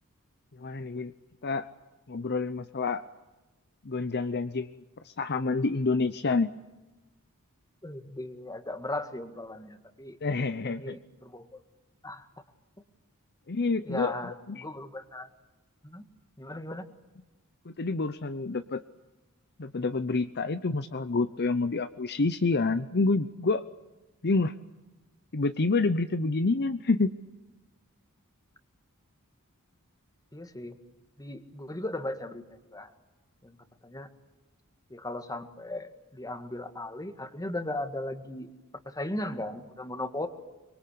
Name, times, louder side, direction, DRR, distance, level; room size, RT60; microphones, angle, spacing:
voice 1, 0.6-1.1 1.4-1.7 2.1-3.0 3.8-6.5 10.2-11.0 13.5-14.6 17.7-18.8 19.6-23.6 24.2-24.5 25.3-27.1, left 3 dB, 50° left, 11 dB, 0.8 m, -28 dB
voice 2, 7.8-10.2 10.8-11.6 12.0-12.3 13.9-15.3 15.8-16.0 16.4-16.9 30.3-30.8 31.2-32.9 33.4-33.6 33.8-34.1 34.9-38.5 38.9-40.3, left 1 dB, 15° left, 8 dB, 1.9 m, -37 dB
25.0 x 23.0 x 8.5 m, 1.1 s
head